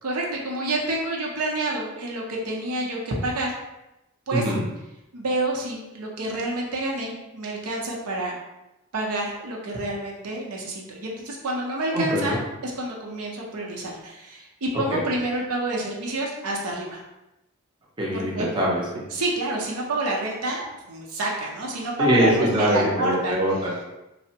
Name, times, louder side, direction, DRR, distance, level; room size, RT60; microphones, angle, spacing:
voice 1, 0.0-3.6 4.3-4.5 5.1-8.4 8.9-17.0 18.1-18.5 19.1-23.4, right 2 dB, 85° right, -2 dB, 0.6 m, -28 dB
voice 2, 4.3-4.6 11.9-12.4 14.9-15.0 18.0-18.8 22.0-23.8, equal, 20° right, -5 dB, 0.5 m, -23 dB
3.3 x 2.1 x 2.7 m, 0.95 s
head